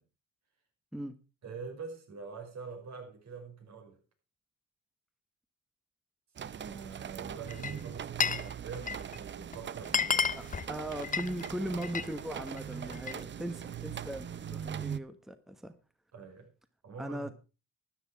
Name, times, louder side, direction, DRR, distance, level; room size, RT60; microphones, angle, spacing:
voice 1, 1.4-4.0 6.4-10.3 16.1-16.5 16.8-17.3, right 5 dB, 65° right, 5.3 m, -45 dB
sound 1, 6.4-15.0, right 8 dB, 40° right, 0.6 m, -41 dB
Glass, 7.5-8.5 8.7-9.2 9.5-9.6 9.8-12.1 12.5-13.2, left 6 dB, 25° left, 0.6 m, -32 dB
voice 2, 10.4-15.7 17.0-17.3, right 1 dB, ahead, 1.1 m, -39 dB
13.0 x 9.8 x 4.7 m
cardioid pair, 90°, 30 cm